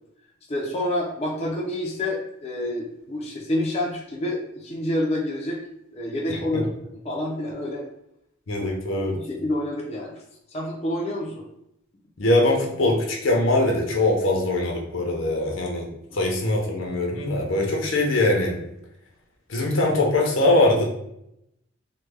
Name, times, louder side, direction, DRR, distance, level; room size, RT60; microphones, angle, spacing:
voice 1, 0.5-5.6 5.9-6.7 7.0-7.8 8.9-10.1 10.5-11.4, left 1 dB, 30° left, -4 dB, 0.5 m, -28 dB
voice 2, 6.3-6.6 8.5-9.2 12.2-15.9 16.1-18.6 19.5-20.8, left 2 dB, 70° left, 0 dB, 0.7 m, -22 dB
3.2 x 2.2 x 3.4 m, 0.79 s
head